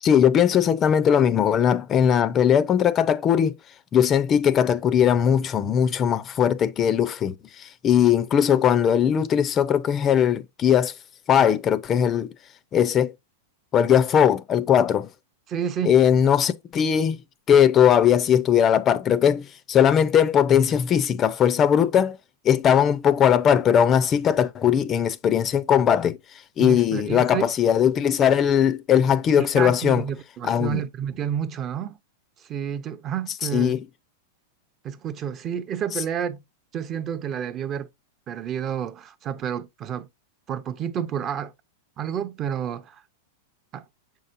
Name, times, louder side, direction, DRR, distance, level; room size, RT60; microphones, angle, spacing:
voice 1, 0.0-3.5 3.9-10.9 11.3-12.3 12.7-13.1 13.7-15.1 15.8-17.2 17.5-22.2 22.4-26.2 26.6-30.0 30.4-30.8 33.5-33.8, left 9 dB, 25° left, 0.5 m, -19 dB
voice 2, 15.5-16.0 26.6-27.5 29.4-32.0 32.4-33.8 34.8-36.4 36.7-37.9 38.3-40.1 40.5-41.5 42.0-43.0 43.7-43.8, right 8 dB, 25° right, 0.6 m, -30 dB
7.3 x 5.5 x 2.6 m
supercardioid pair, 155°, 0 cm